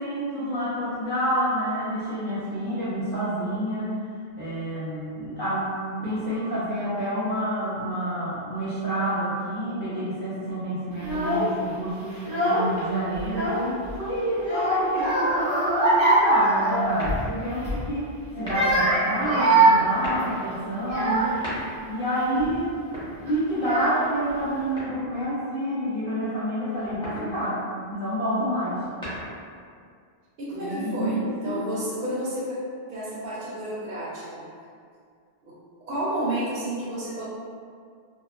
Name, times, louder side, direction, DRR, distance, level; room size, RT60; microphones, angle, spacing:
voice 1, 0.0-4.0 4.4-5.8 6.0-12.2 12.5-21.3 21.9-22.7 23.2-27.6 27.9-28.8 30.5-31.7, right 1 dB, 65° left, -13 dB, 0.9 m, -28 dB
Child speech kid speaking / Crying sobbing, 11.0-11.5 12.1-12.8 13.1-14.0 14.4-17.3 17.6-17.9 18.4-21.5 22.1-22.5 23.3-23.4 23.6-24.3, right 2 dB, 35° right, 0.5 m, -23 dB
sound 1, 17.0-17.6 18.3-18.9 19.8-20.3 21.2-22.0 22.8-23.7 24.8-25.4 26.8-27.4 28.7-29.6, equal, 5° left, 0.7 m, -38 dB
voice 2, 30.4-32.6 32.9-34.4 35.4-35.5 35.9-37.2, right 1 dB, 65° right, -8 dB, 0.8 m, -31 dB
2.9 x 2.1 x 2.3 m, 2.2 s
omnidirectional pair, 1.1 m